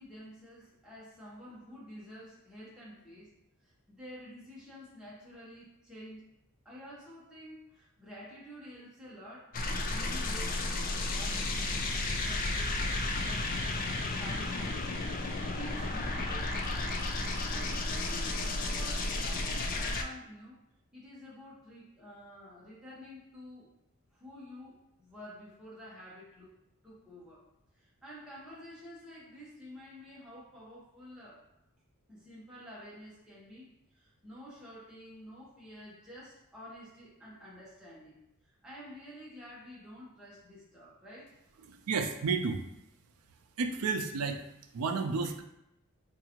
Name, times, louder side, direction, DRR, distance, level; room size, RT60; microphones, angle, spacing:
voice 1, 0.0-3.3 3.6-6.3 6.6-9.6 9.8-15.3 15.5-17.1 17.5-20.6 20.9-23.7 24.1-26.6 26.8-27.4 27.7-31.5 32.1-38.2 38.4-41.4, equal, 5° right, -8 dB, 0.9 m, -49 dB
sound 1, 9.5-20.0, left 2 dB, 40° left, 0.4 m, -33 dB
voice 2, 41.6-42.6 43.6-44.4 44.7-45.4, right 4 dB, 85° right, 6 dB, 0.4 m, -31 dB
4.7 x 2.6 x 2.8 m, 0.85 s
head